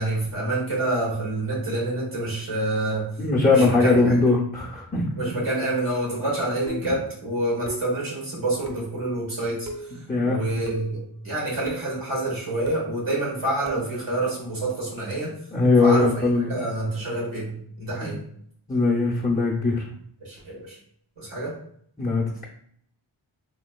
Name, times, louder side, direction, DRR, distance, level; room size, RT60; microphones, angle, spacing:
voice 1, 0.0-3.1 3.5-4.1 5.2-9.6 10.2-15.3 15.8-16.2 16.5-17.5 17.8-18.2 20.2-20.8 21.2-21.5, right 2 dB, 90° right, -5 dB, 1.4 m, -27 dB
voice 2, 3.2-5.1 10.1-10.4 15.5-16.6 18.0-18.1 18.7-19.8 22.0-22.5, left 3 dB, 20° left, -5 dB, 0.5 m, -20 dB
sound 1, 6.7-7.1 7.7-8.1 8.7-9.0 9.7-10.0 10.7-11.0 11.7-11.9 12.7-12.9 13.7-13.9, equal, 35° right, 0.6 m, -36 dB
3.2 x 3.1 x 2.2 m, 0.65 s
wide cardioid pair, 40°, 49 cm